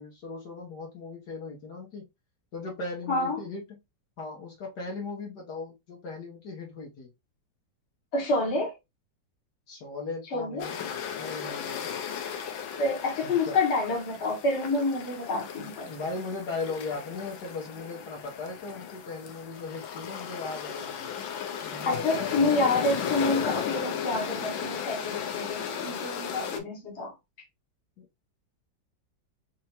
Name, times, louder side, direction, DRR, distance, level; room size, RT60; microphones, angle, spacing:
voice 1, 0.0-2.0 2.5-3.8 4.2-7.1 9.7-12.1 13.2-13.6 15.6-21.1 21.6-22.4 28.0-28.1, left 3 dB, 60° left, 1.6 m, -38 dB
voice 2, 3.1-3.4 8.1-8.8 10.3-10.7 12.8-15.9 21.7-27.1, left 2 dB, 40° left, 1.5 m, -28 dB
sound 1, 10.6-26.6, left 8 dB, 90° left, 1.5 m, -35 dB
4.4 x 2.7 x 2.9 m
omnidirectional pair, 2.0 m